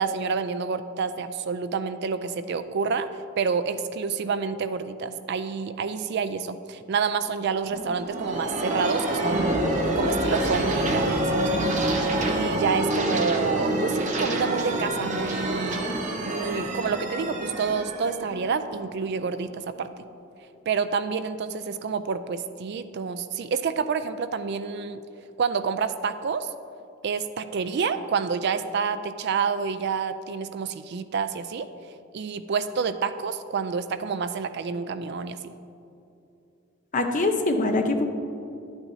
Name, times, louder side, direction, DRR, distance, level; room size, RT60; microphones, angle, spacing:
voice 1, 0.0-3.1 3.4-9.6 10.0-11.8 12.3-15.8 16.3-20.1 20.7-25.0 25.4-26.5 27.0-31.7 32.1-35.5, right 5 dB, 50° right, 12 dB, 0.3 m, -28 dB
sound 1, 7.7-19.2, right 1 dB, 35° right, 0.9 m, -27 dB
voice 2, 36.9-38.0, left 2 dB, 35° left, 5 dB, 0.7 m, -23 dB
11.5 x 9.0 x 2.7 m, 2.7 s
head